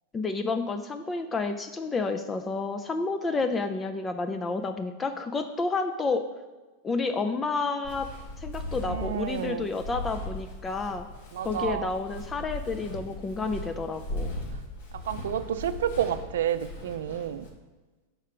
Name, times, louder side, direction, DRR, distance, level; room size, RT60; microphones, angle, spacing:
voice 1, 0.1-6.3 6.8-8.1 8.4-11.1 11.4-14.3, left 3 dB, 15° left, 8 dB, 0.3 m, -30 dB
Walk footsteps, 7.8-17.5, left 1 dB, 70° left, 1.4 m, -38 dB
voice 2, 8.9-9.7 11.3-11.9 15.1-17.5, right 10 dB, 85° right, 12 dB, 0.4 m, -30 dB
5.6 x 4.5 x 5.0 m, 1.2 s
supercardioid pair, 140°, 0 cm